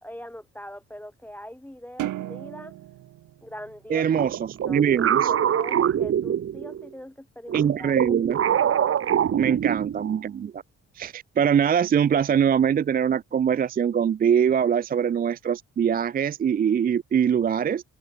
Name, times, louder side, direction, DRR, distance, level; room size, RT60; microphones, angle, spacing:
voice 1, 0.0-2.7 3.4-4.2 4.6-4.8 5.3-7.9 9.1-9.6, equal, 5° left, 1.5 m, -42 dB
sound 1, 2.0-4.6, right 14 dB, 80° right, 2.2 m, -36 dB
voice 2, 3.9-5.3 7.5-8.4 9.3-10.6 11.0-17.8, right 8 dB, 30° right, 0.4 m, -23 dB
sound 2, 4.1-6.9 7.5-10.2, right 9 dB, 45° right, 1.0 m, -24 dB
cardioid pair, 90°, 30 cm